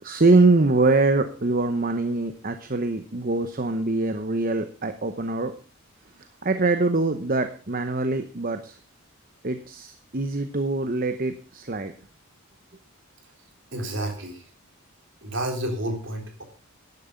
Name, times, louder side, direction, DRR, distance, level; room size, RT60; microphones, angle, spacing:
voice 1, 0.0-5.5 6.4-8.8 9.4-11.9, right 3 dB, 40° right, 8 dB, 0.9 m, -23 dB
voice 2, 13.7-14.5 15.2-16.4, right 1 dB, 55° right, 3 dB, 3.7 m, -30 dB
13.0 x 11.0 x 5.2 m, 0.39 s
head